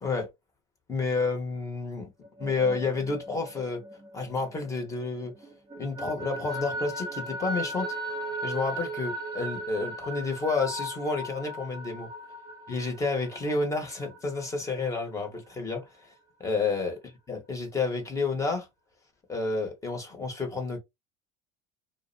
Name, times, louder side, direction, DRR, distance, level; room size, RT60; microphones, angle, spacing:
voice 1, 0.9-2.1 2.4-3.8 4.1-5.3 5.8-7.9 8.4-12.1 12.7-16.1 16.4-17.0 17.3-18.7 19.3-20.8, left 4 dB, 20° left, 1.0 m, -30 dB
sound 1, 2.2-5.1 5.4-14.9, right 1 dB, 20° right, 0.8 m, -37 dB
2.5 x 2.0 x 2.6 m
supercardioid pair, 115°, 16 cm